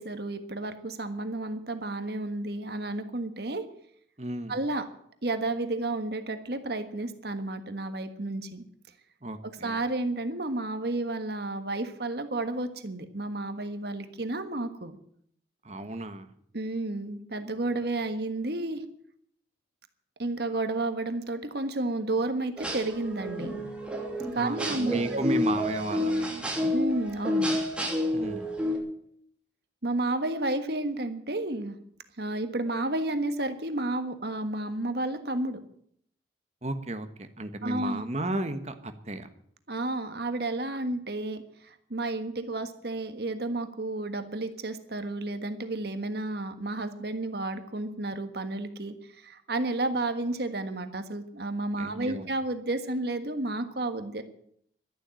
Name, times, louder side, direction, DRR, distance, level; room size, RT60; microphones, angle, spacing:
voice 1, 0.0-3.7 4.5-4.8 5.2-8.6 9.4-15.0 16.5-18.8 20.2-23.6 24.3-25.2 26.7-27.6 29.8-31.8 32.2-35.6 37.6-38.0 39.7-54.2, right 2 dB, 60° right, 8 dB, 1.5 m, -31 dB
voice 2, 4.2-4.5 9.2-9.8 15.6-16.3 24.3-26.7 28.1-28.5 36.6-39.3 40.7-40.8 51.8-52.3, right 2 dB, 35° right, 8 dB, 1.4 m, -34 dB
sound 1, 22.6-28.8, left 1 dB, 5° right, 2.8 m, -29 dB
12.5 x 11.5 x 9.1 m, 0.67 s
head